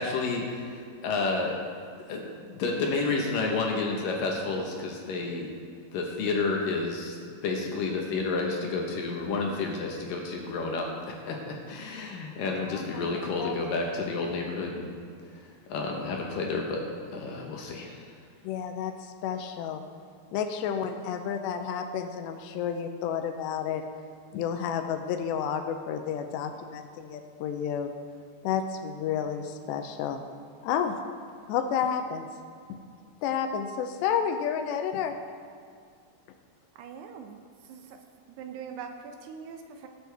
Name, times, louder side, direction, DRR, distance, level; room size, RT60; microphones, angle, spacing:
voice 1, 0.0-1.6 2.1-5.5 5.9-7.2 7.4-14.9 15.3-15.4 15.7-16.8 17.1-18.1, left 3 dB, 70° left, 0 dB, 2.3 m, -30 dB
voice 2, 12.7-13.6 18.4-19.8 20.3-23.8 24.3-27.9 28.4-30.2 30.6-30.9 31.5-32.3 32.7-32.8 33.2-35.2, left 8 dB, 85° left, 6 dB, 2.8 m, -31 dB
voice 3, 36.8-38.0 38.3-39.9, right 6 dB, 80° right, 4 dB, 2.6 m, -42 dB
18.5 x 8.2 x 3.4 m, 2.3 s
omnidirectional pair, 5.0 m